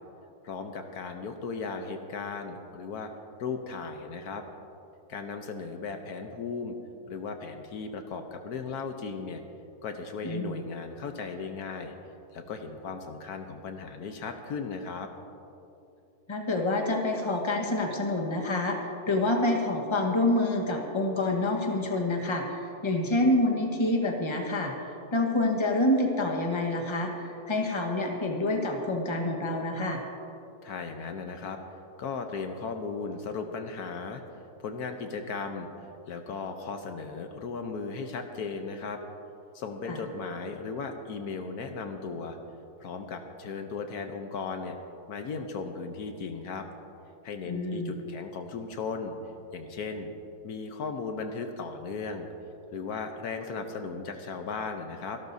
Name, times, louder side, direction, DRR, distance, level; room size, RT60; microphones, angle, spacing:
voice 1, 0.4-3.1 3.4-4.4 5.1-6.8 7.1-9.4 9.8-11.9 12.3-15.1 30.6-31.6 32.0-34.2 34.6-39.0 39.5-42.4 42.8-44.8 45.1-46.7 47.2-49.2 49.5-50.1 50.4-52.3 52.7-55.2, left 4 dB, 75° left, 5 dB, 1.3 m, -36 dB
voice 2, 10.2-10.6 16.3-30.0 39.9-40.0 47.5-47.9, left 2 dB, 20° left, 1 dB, 1.2 m, -27 dB
26.0 x 12.0 x 2.7 m, 2.8 s
omnidirectional pair, 1.7 m